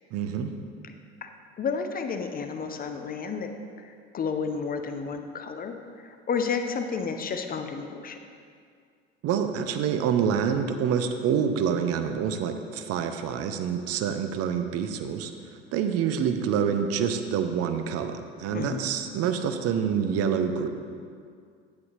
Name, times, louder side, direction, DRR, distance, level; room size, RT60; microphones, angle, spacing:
voice 1, 0.1-0.5 9.2-20.7, right 7 dB, 50° right, 8 dB, 0.7 m, -27 dB
voice 2, 1.6-3.5 3.8-8.2 18.5-18.8, left 5 dB, 30° left, 6 dB, 0.7 m, -31 dB
9.3 x 8.4 x 3.2 m, 2.2 s
hypercardioid pair, 70°, 32 cm